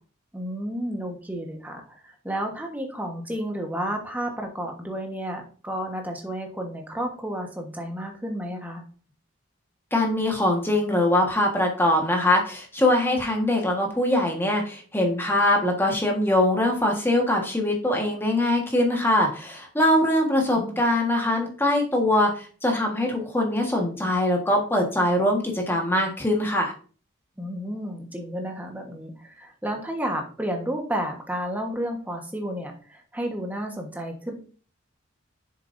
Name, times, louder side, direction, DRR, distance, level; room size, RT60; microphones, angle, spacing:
voice 1, 0.3-8.8 20.5-20.8 27.4-34.3, equal, 10° right, 2 dB, 1.2 m, -31 dB
voice 2, 9.9-26.7, left 1 dB, 10° left, 1 dB, 1.4 m, -22 dB
7.5 x 6.8 x 2.6 m, 0.40 s
head